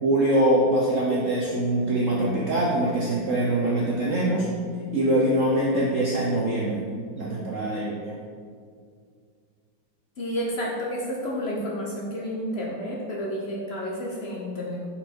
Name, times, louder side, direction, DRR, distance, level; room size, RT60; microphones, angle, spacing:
voice 1, 0.0-4.5 4.9-6.8 7.1-8.1, right 1 dB, 70° right, -4 dB, 0.7 m, -23 dB
voice 2, 10.2-14.8, equal, 65° left, -3 dB, 0.6 m, -30 dB
5.3 x 4.3 x 4.4 m, 2.2 s
omnidirectional pair, 2.1 m